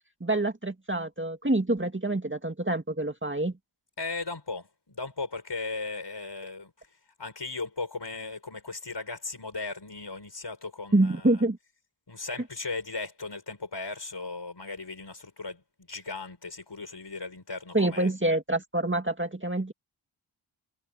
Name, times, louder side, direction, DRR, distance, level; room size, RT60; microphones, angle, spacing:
voice 1, 0.2-3.5 10.9-11.6 17.7-19.7, right 2 dB, 25° right, 2.4 m, -26 dB
voice 2, 4.0-6.7 7.2-11.4 12.1-18.1, left 3 dB, 55° left, 5.5 m, -37 dB
wide cardioid pair, 45°, 49 cm